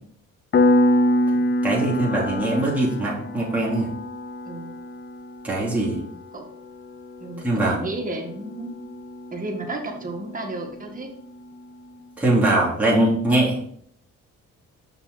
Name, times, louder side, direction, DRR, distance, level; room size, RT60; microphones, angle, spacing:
Piano, 0.5-10.9, left 1 dB, 35° left, 0.8 m, -26 dB
voice 1, 1.6-3.9 5.4-6.0 7.4-7.8 12.2-13.6, right 1 dB, 5° right, -7 dB, 3.0 m, -21 dB
voice 2, 7.2-8.8 9.3-11.1, right 2 dB, 25° right, 1 dB, 1.7 m, -32 dB
6.0 x 5.9 x 4.0 m, 0.64 s
cardioid pair, 90°, 30 cm